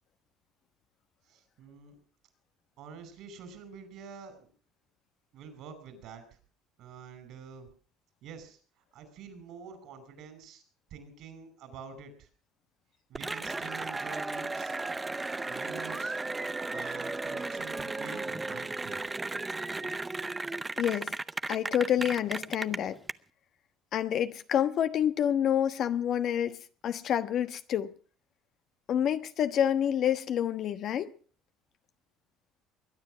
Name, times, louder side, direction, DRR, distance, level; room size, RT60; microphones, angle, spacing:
voice 1, 1.3-2.0 2.8-4.5 5.3-6.3 6.8-7.7 8.2-10.6 10.9-12.3 13.1-14.8 15.5-16.2 16.7-19.0, right 6 dB, 65° right, 5.2 m, -47 dB
Cheering / Applause, 13.2-23.1, right 3 dB, 20° right, 0.7 m, -35 dB
voice 2, 20.8-21.1 21.5-23.0 23.9-27.9 28.9-31.1, left 9 dB, 55° left, 1.2 m, -28 dB
22.0 x 9.9 x 6.2 m
hypercardioid pair, 70°, 0 cm